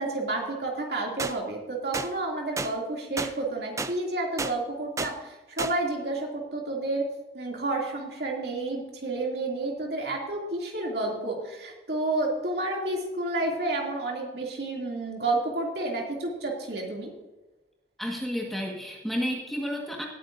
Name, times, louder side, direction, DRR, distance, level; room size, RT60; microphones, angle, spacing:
voice 1, 0.0-7.1 7.3-17.1, right 2 dB, 60° right, -1 dB, 2.7 m, -30 dB
sound 1, 1.2-1.3 1.9-2.1 2.6-2.7 3.2-3.3 3.8-3.9 4.4-4.5 5.0-5.1 5.6-5.7, right 3 dB, 15° right, 0.4 m, -30 dB
voice 2, 18.0-20.1, equal, ahead, -2 dB, 1.6 m, -31 dB
18.5 x 9.4 x 2.6 m, 1.1 s
head